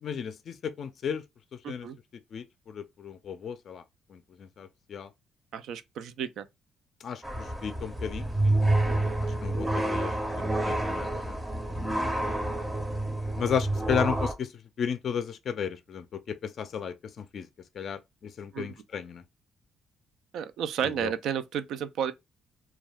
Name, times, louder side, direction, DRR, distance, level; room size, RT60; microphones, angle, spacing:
voice 1, 0.0-1.2 1.5-1.9 2.3-3.8 4.1-5.1 7.0-8.6 8.9-11.4 11.9-12.1 13.4-14.5 14.8-17.5 17.7-19.2 20.8-21.1, left 7 dB, 60° left, 0.3 m, -34 dB
voice 2, 1.6-2.0 5.5-6.5 8.8-9.2 18.5-18.7 20.3-22.1, right 8 dB, 80° right, 0.3 m, -32 dB
sound 1, 7.2-14.3, right 1 dB, 15° right, 0.6 m, -28 dB
2.3 x 2.2 x 3.3 m
cardioid pair, 90°, 0 cm